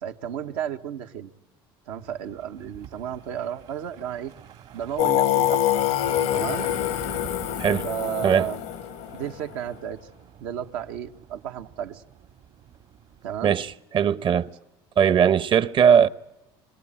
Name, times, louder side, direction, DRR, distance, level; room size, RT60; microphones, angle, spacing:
voice 1, 0.0-1.3 1.9-4.3 4.7-5.7 6.3-6.7 7.8-8.6 9.1-10.0 10.4-12.0 13.2-13.6, right 9 dB, 80° right, 1.2 m, -33 dB
sound 1, 2.0-13.8, right 9 dB, 60° right, 2.0 m, -45 dB
Singing, 5.0-9.7, left 12 dB, 75° left, 0.8 m, -25 dB
voice 2, 13.4-14.5 15.0-16.1, right 8 dB, 45° right, 0.9 m, -19 dB
26.5 x 18.5 x 8.9 m
supercardioid pair, 85°, 12 cm